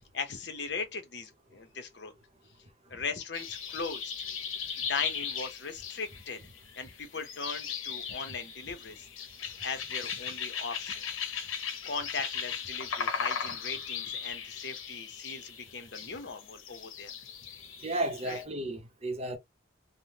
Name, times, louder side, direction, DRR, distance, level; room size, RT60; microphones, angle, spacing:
voice 1, 0.1-2.1 2.9-4.1 4.9-6.5 6.8-9.1 9.4-11.0 11.9-17.1 18.3-18.4, left 5 dB, 60° left, 0.9 m, -38 dB
sound 1, 3.3-18.4, left 6 dB, 85° left, 0.8 m, -38 dB
voice 2, 17.8-19.4, right 1 dB, 30° right, 0.7 m, -33 dB
3.5 x 2.1 x 2.8 m
head